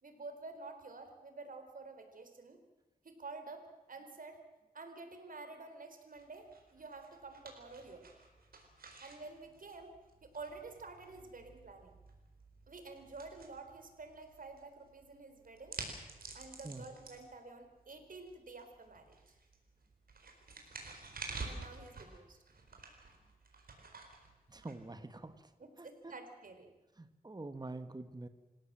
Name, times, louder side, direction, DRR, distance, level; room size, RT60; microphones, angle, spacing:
voice 1, 0.0-2.6 3.0-4.4 4.7-8.1 9.0-9.9 10.2-12.0 12.7-15.8 16.3-19.2 21.4-22.4 25.6-26.7, right 3 dB, 65° right, 7 dB, 4.1 m, -50 dB
sound 1, 6.1-25.4, right 3 dB, 80° right, 4.6 m, -51 dB
voice 2, 24.5-25.4 25.8-26.1 27.0-28.3, right 2 dB, 25° right, 10 dB, 1.5 m, -46 dB
27.0 x 16.5 x 7.6 m, 1.1 s
cardioid pair, 60°, 15 cm